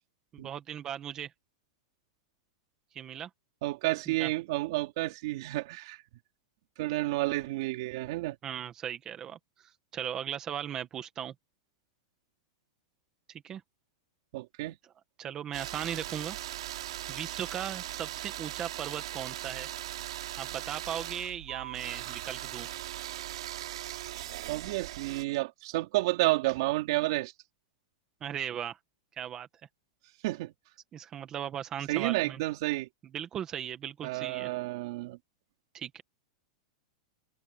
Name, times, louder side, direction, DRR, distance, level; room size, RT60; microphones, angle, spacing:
voice 1, 0.3-1.3 2.9-3.3 4.1-4.3 8.4-9.4 9.9-11.3 13.3-13.6 15.2-16.4 17.1-19.7 20.4-22.7 28.2-28.8 29.2-29.5 30.9-32.4 33.1-34.5 35.7-36.0, right 9 dB, 20° right, 1.7 m, -37 dB
voice 2, 3.6-6.0 6.8-8.4 14.3-14.8 24.5-27.3 30.2-30.5 31.9-32.9 34.0-35.2, right 19 dB, 45° right, 3.4 m, -30 dB
sound 1, 15.5-25.2, right 14 dB, 65° right, 6.4 m, -39 dB
supercardioid pair, 175°, 3 cm